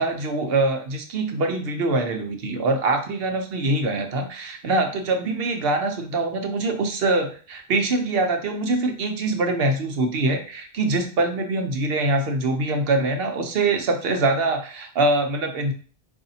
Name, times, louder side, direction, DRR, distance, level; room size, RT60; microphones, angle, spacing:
voice 1, 0.0-15.7, right 2 dB, 70° right, 4 dB, 0.9 m, -24 dB
4.8 x 2.7 x 2.7 m, 0.40 s
omnidirectional pair, 1.1 m